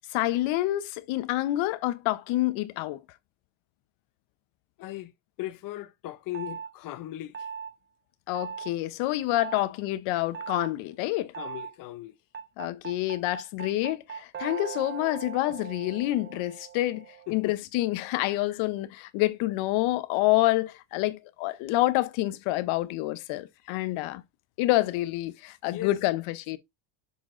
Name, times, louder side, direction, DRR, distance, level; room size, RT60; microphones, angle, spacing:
voice 1, 0.1-3.0 8.3-11.3 12.6-24.2 24.6-26.6, left 17 dB, 80° left, 0.9 m, -27 dB
voice 2, 4.8-5.1 5.4-7.5 11.4-12.1 17.3-17.5 18.5-18.6 25.7-26.0, left 15 dB, 45° left, 0.7 m, -38 dB
sound 1, 6.3-6.7 7.3-7.7 8.3-8.7 9.3-9.7 10.3-10.7 11.3-11.7 12.3-17.4, right 7 dB, 25° right, 0.6 m, -39 dB
7.0 x 3.8 x 3.7 m
cardioid pair, 135°, 47 cm